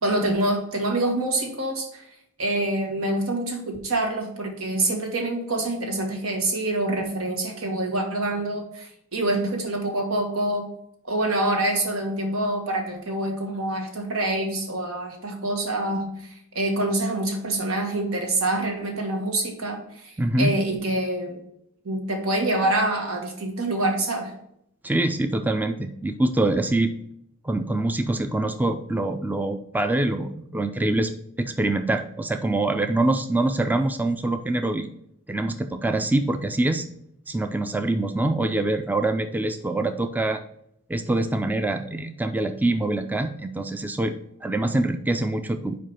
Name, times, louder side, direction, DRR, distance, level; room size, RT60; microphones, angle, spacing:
voice 1, 0.0-2.1 2.4-10.7 11.0-21.4 21.8-24.3, right 1 dB, 85° right, 2 dB, 1.8 m, -26 dB
voice 2, 20.2-20.5 24.8-27.0 27.4-34.9 35.3-36.9 37.3-40.4 40.9-45.8, right 2 dB, 10° right, 7 dB, 0.3 m, -25 dB
5.2 x 4.8 x 5.7 m, 0.74 s
head